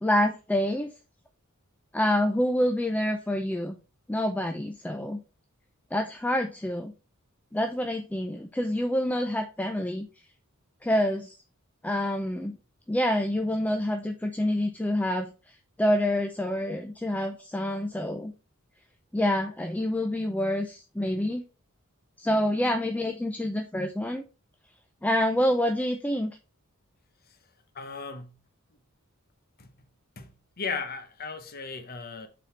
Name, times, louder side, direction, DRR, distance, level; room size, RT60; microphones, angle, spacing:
voice 1, 0.0-0.9 1.9-3.8 4.1-5.2 5.9-6.9 7.5-10.1 10.8-11.3 11.8-12.6 12.9-18.3 19.1-21.4 22.2-24.2 25.0-26.4, left 1 dB, 5° left, 0.5 m, -27 dB
voice 2, 27.7-28.4 29.6-29.7 30.2-32.3, left 5 dB, 45° left, 1.0 m, -36 dB
5.8 x 4.2 x 4.4 m
head